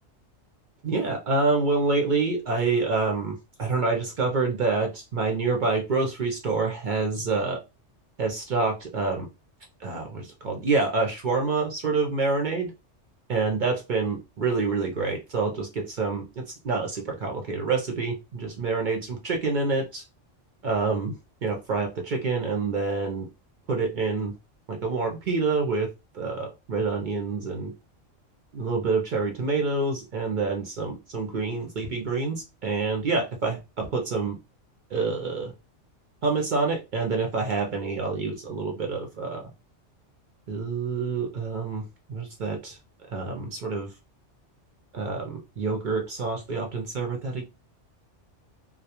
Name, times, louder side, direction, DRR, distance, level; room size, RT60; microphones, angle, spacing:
voice 1, 0.8-7.6 8.2-9.3 9.8-12.7 13.3-20.0 20.6-23.3 23.7-24.3 24.7-25.9 26.1-27.7 28.5-34.4 34.9-35.5 36.2-39.5 40.5-42.8 43.1-43.9 44.9-47.4, right 4 dB, 60° right, 1 dB, 0.5 m, -27 dB
2.2 x 2.2 x 2.8 m, 0.26 s
omnidirectional pair, 1.3 m